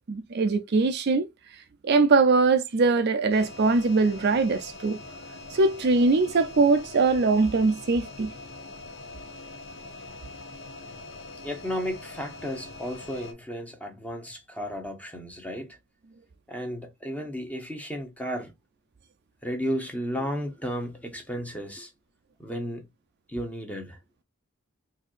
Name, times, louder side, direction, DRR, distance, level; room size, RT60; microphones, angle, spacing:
voice 1, 0.1-1.3 1.8-5.0 5.5-8.3, right 3 dB, 50° right, 0.4 m, -22 dB
sound 1, 3.3-13.3, left 3 dB, 50° left, 0.9 m, -43 dB
voice 2, 11.4-15.8 16.5-18.5 19.4-21.9 22.4-22.9 23.3-24.0, equal, 5° left, 1.0 m, -33 dB
4.4 x 2.6 x 2.4 m
head